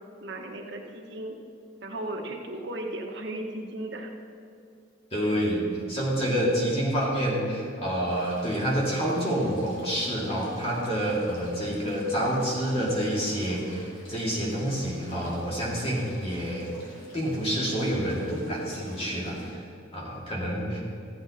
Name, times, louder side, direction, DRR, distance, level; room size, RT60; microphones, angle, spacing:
voice 1, 0.2-1.4 1.8-4.1, right 1 dB, 55° right, 1 dB, 1.3 m, -36 dB
voice 2, 5.1-16.7 17.1-19.6 19.9-20.8, equal, 30° left, -4 dB, 2.3 m, -28 dB
sound 1, 8.1-19.5, left 1 dB, 75° left, 3.0 m, -47 dB
15.0 x 7.7 x 4.2 m, 2.4 s
head